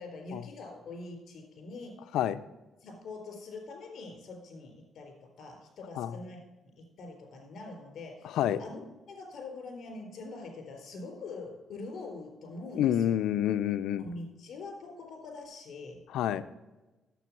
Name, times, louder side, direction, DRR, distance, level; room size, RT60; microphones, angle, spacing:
voice 1, 0.0-2.0 2.8-6.4 6.8-13.2 14.0-16.0, left 3 dB, 60° left, 2 dB, 3.8 m, -44 dB
voice 2, 8.2-8.6 12.8-14.0 16.1-16.4, left 11 dB, 85° left, 14 dB, 0.5 m, -28 dB
9.2 x 7.7 x 6.0 m, 1.1 s
cardioid pair, 90°, 0 cm